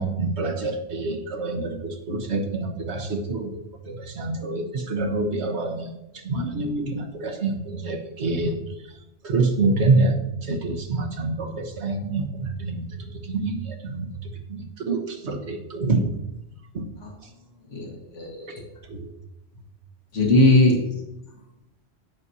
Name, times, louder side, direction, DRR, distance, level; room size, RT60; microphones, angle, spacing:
voice 1, 0.0-3.6 3.9-5.9 6.2-8.6 9.2-14.1 14.5-16.1 16.7-16.9 18.9-19.1, right 3 dB, 65° right, 4 dB, 1.5 m, -26 dB
voice 2, 6.3-6.9 17.0-17.1 17.7-18.6 20.1-20.8, left 1 dB, 75° left, -1 dB, 2.0 m, -21 dB
15.5 x 6.2 x 2.8 m, 0.88 s
omnidirectional pair, 1.3 m